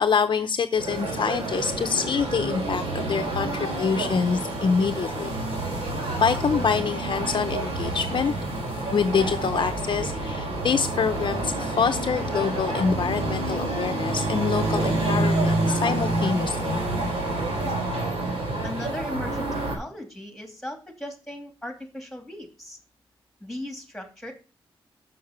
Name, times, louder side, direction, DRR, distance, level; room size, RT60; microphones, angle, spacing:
voice 1, 0.0-5.4 6.2-8.3 8.9-16.8, left 6 dB, 55° left, 8 dB, 0.6 m, -25 dB
sound 1, 0.8-19.8, right 2 dB, 90° right, 3.1 m, -28 dB
voice 2, 17.5-17.8 18.6-22.8 23.4-24.3, left 1 dB, 5° left, 4 dB, 2.6 m, -37 dB
6.5 x 6.3 x 5.8 m, 0.32 s
cardioid pair, 80°, 10 cm